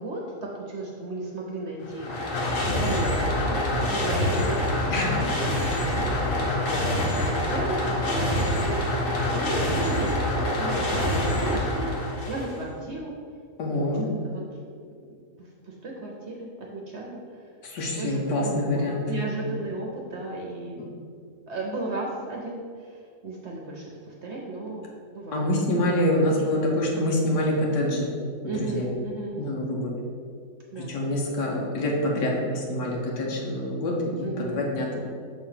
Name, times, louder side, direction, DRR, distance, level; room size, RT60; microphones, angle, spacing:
voice 1, 0.0-3.6 3.9-10.2 10.6-11.9 12.2-13.1 13.7-14.4 15.1-17.4 18.0-20.8 21.5-25.5 25.8-26.4 28.4-29.4 30.7-31.0 34.2-34.7, right 2 dB, 55° right, -1 dB, 0.8 m, -35 dB
sound 1, 1.8-12.7, left 1 dB, 55° left, 1.3 m, -26 dB
voice 2, 13.6-14.1 17.6-19.0 25.3-28.1 28.6-28.9 29.4-29.9 30.8-35.1, left 1 dB, 90° left, -2 dB, 1.6 m, -26 dB
6.2 x 3.1 x 5.7 m, 2.1 s
omnidirectional pair, 1.8 m